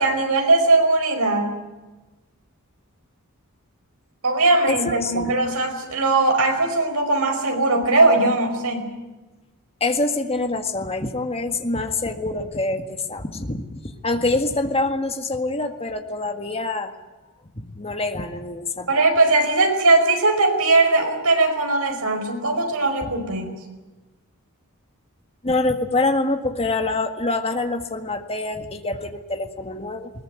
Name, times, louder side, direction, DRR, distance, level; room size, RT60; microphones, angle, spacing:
voice 1, 0.0-1.6 4.2-8.9 18.9-23.5, right 2 dB, 75° right, 4 dB, 5.1 m, -19 dB
voice 2, 4.7-5.3 9.8-16.9 17.7-19.1 25.4-30.1, left 2 dB, 25° left, 6 dB, 1.8 m, -25 dB
21.0 x 19.5 x 9.6 m, 1.1 s
head